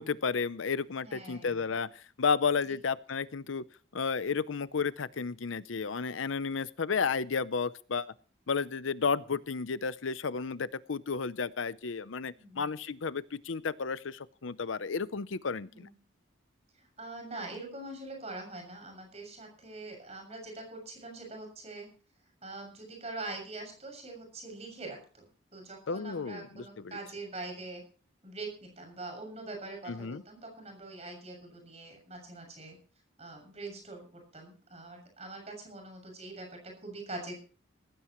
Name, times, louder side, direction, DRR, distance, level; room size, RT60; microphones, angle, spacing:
voice 1, 0.0-3.6 3.9-8.1 8.5-15.9 25.9-27.0 29.9-30.2, left 5 dB, 80° left, 16 dB, 0.6 m, -32 dB
voice 2, 1.0-1.7 2.6-2.7 12.4-12.7 15.7-15.9 16.7-21.9 22.4-27.8 28.2-32.8 33.2-37.4, right 2 dB, 35° right, 3 dB, 7.0 m, -43 dB
18.5 x 16.0 x 3.1 m, 0.39 s
head